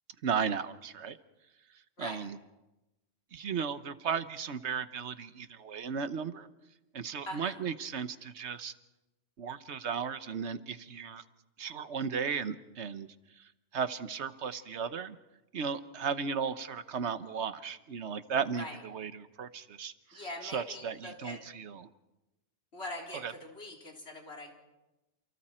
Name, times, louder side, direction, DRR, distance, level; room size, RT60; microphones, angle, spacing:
voice 1, 0.2-1.2 2.0-2.4 3.3-6.5 6.9-8.7 9.4-11.2 11.6-13.1 13.7-15.2 15.5-21.9 23.2-23.3, right 6 dB, 70° right, 12 dB, 1.3 m, -35 dB
voice 2, 7.3-7.6 18.6-18.8 20.1-21.4 22.7-24.5, left 1 dB, 65° left, 0 dB, 4.1 m, -42 dB
28.5 x 28.5 x 4.4 m, 1.0 s
omnidirectional pair, 1.2 m